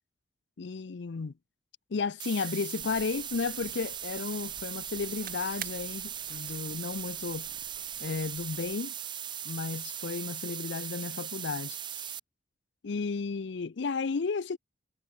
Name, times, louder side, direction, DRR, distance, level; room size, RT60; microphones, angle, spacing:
voice 1, 0.6-1.3 1.9-7.5 8.0-9.0 9.4-12.1 12.8-14.6, left 4 dB, 65° left, 0.5 m, -33 dB
sound 1, 2.2-12.2, right 10 dB, 25° right, 0.5 m, -39 dB
sound 2, 2.8-8.7, right 8 dB, 50° right, 2.6 m, -50 dB
head